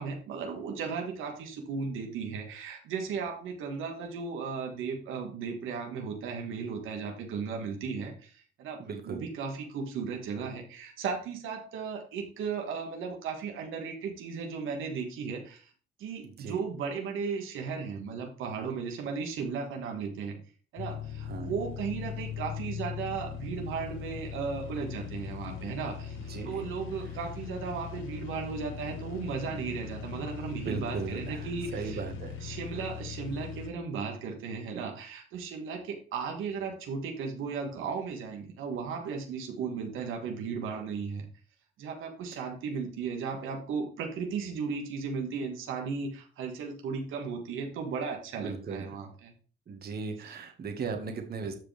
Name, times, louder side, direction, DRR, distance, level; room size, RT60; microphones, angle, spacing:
voice 1, 0.0-15.7 16.0-20.4 20.7-32.0 32.4-41.3 41.8-49.3 50.2-50.4, right 5 dB, 85° right, 2 dB, 1.8 m, -36 dB
voice 2, 8.8-9.3 16.2-16.6 21.2-21.5 26.3-26.7 30.5-32.4 42.3-42.4 48.4-48.9 49.7-51.6, right 5 dB, 50° right, 5 dB, 1.8 m, -37 dB
sound 1, 20.8-33.7, left 8 dB, 80° left, 1.1 m, -40 dB
13.5 x 5.0 x 3.4 m, 0.40 s
cardioid pair, 90°, 20 cm